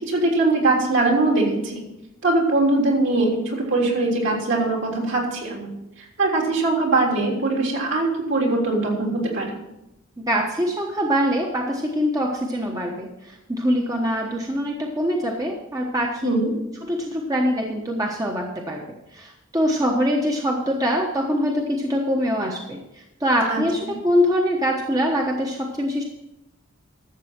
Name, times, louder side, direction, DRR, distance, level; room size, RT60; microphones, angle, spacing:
voice 1, 0.0-1.8 2.2-5.7 6.2-9.5 16.2-16.5 23.5-23.6, right 2 dB, 60° right, -1 dB, 3.3 m, -21 dB
voice 2, 10.2-16.3 16.8-18.8 19.1-22.8 23.2-26.0, equal, 15° right, 0 dB, 1.1 m, -23 dB
12.5 x 7.6 x 5.9 m, 0.90 s
head